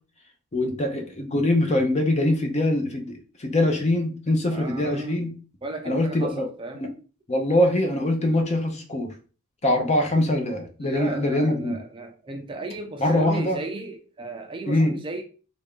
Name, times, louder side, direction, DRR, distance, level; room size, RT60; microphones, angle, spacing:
voice 1, 0.5-3.1 3.4-5.3 5.8-6.5 6.7-6.9 7.3-9.1 9.6-11.8 13.0-13.6 14.7-14.9, left 1 dB, 30° left, 0.6 m, -23 dB
voice 2, 4.5-5.2 5.6-6.8 10.8-15.2, right 2 dB, 25° right, 0.4 m, -35 dB
3.3 x 2.6 x 3.5 m
head